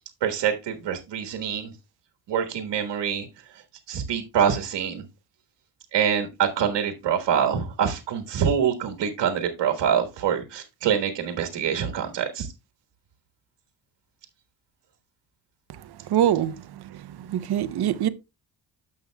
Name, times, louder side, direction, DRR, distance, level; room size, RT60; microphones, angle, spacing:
voice 1, 0.2-1.7 2.3-3.3 3.9-5.0 5.9-12.5, right 8 dB, 75° right, 1.5 m, -25 dB
voice 2, 16.1-16.5 17.3-18.1, right 11 dB, 60° right, 0.8 m, -22 dB
14.0 x 5.4 x 2.2 m
cardioid pair, 85°, 44 cm